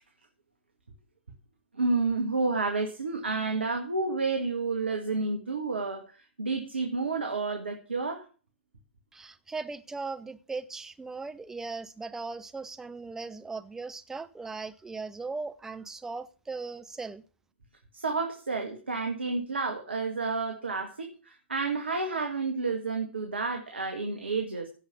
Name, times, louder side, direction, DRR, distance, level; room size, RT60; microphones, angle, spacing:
voice 1, 1.7-8.2 17.9-24.7, right 3 dB, 75° right, 2.0 m, -30 dB
voice 2, 9.1-17.2, right 4 dB, 5° right, 0.8 m, -38 dB
16.5 x 5.6 x 7.1 m
figure-of-eight pair, 110°, 6 cm